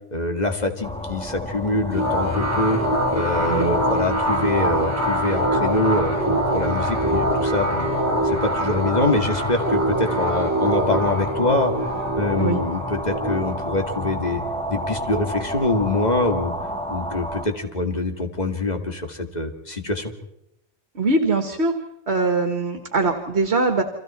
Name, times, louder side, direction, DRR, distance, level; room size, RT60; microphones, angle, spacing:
voice 1, 0.1-2.8 3.1-7.9 8.2-11.7 12.2-14.4 14.7-16.5 16.9-20.1, left 2 dB, 35° left, 5 dB, 2.2 m, -24 dB
sound 1, 0.8-17.5, equal, 5° left, 2.4 m, -31 dB
sound 2, 1.9-15.2, right 1 dB, 10° right, 4.2 m, -24 dB
voice 2, 21.0-21.7 22.1-23.8, right 3 dB, 60° right, 6 dB, 2.0 m, -22 dB
30.0 x 25.0 x 4.4 m, 0.80 s
omnidirectional pair, 1.2 m